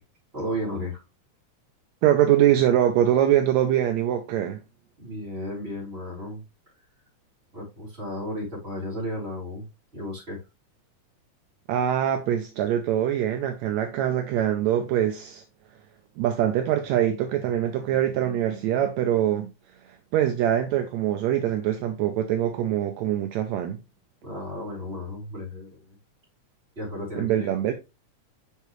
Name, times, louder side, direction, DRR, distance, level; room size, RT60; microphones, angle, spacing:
voice 1, 0.3-1.0 5.0-6.4 7.5-9.7 9.9-10.4 24.2-25.8 26.8-27.7, left 1 dB, 20° right, 3.6 m, -34 dB
voice 2, 2.0-4.6 11.7-15.4 16.2-19.5 19.9-23.8 27.2-27.7, right 11 dB, 75° right, 1.9 m, -23 dB
6.7 x 5.3 x 3.1 m
omnidirectional pair, 3.3 m